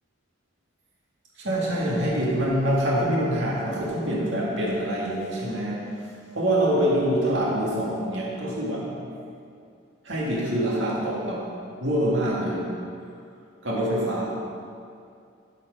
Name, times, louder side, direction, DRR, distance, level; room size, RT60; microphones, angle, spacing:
voice 1, 1.4-5.8 6.3-9.1 10.0-11.5 11.8-12.7 13.6-14.3, right 1 dB, 70° right, -5 dB, 2.1 m, -25 dB
12.5 x 4.6 x 5.0 m, 2.4 s
head